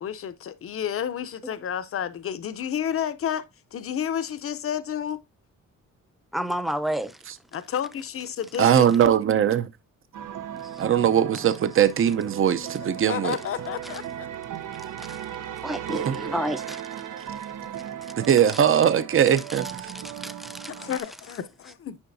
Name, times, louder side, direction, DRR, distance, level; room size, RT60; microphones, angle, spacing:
voice 1, 0.0-3.4 3.7-5.2 7.5-8.9 12.9-14.3 20.7-22.0, left 9 dB, 45° left, 0.6 m, -31 dB
voice 2, 6.3-7.1 15.6-16.8 20.2-20.7, equal, ahead, 0.6 m, -29 dB
voice 3, 8.6-9.7 10.8-13.4 15.9-16.2 18.2-19.9, right 9 dB, 40° right, 0.6 m, -21 dB
sound 1, 10.1-21.0, right 10 dB, 80° right, 0.8 m, -36 dB
9.7 x 5.5 x 2.6 m
cardioid pair, 120°, 31 cm